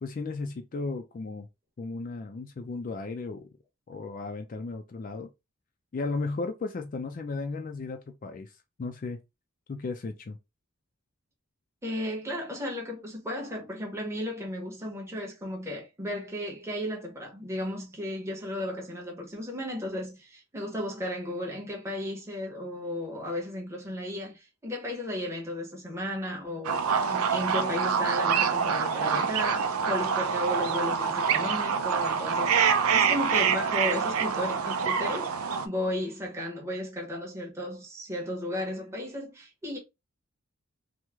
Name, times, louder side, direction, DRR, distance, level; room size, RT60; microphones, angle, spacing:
voice 1, 0.0-1.5 1.8-3.5 3.9-5.3 5.9-8.5 8.8-9.2 9.7-10.4, left 3 dB, 40° left, 0.3 m, -35 dB
voice 2, 11.8-26.8 27.1-32.5 32.9-39.8, left 1 dB, 15° right, 0.9 m, -34 dB
sound 1, 26.6-35.7, right 6 dB, 90° right, 0.4 m, -26 dB
3.0 x 2.1 x 3.4 m
head